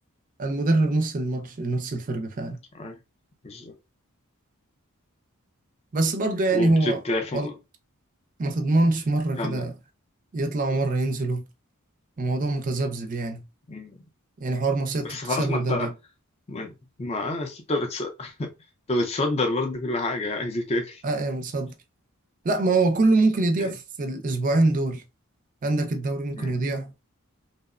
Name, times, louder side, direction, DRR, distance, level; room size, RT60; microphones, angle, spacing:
voice 1, 0.4-2.6 5.9-7.0 7.3-7.5 8.4-9.7 10.3-11.4 12.2-13.4 14.4-15.9 21.0-21.7 22.4-25.0 25.6-26.9, right 2 dB, 40° right, 0.4 m, -24 dB
voice 2, 6.5-7.5 9.4-9.6 13.7-14.0 15.0-15.9 16.5-16.7 17.0-18.5 18.9-21.0 23.6-23.7 26.4-26.6, left 2 dB, 30° left, 0.4 m, -28 dB
2.7 x 2.0 x 2.4 m
head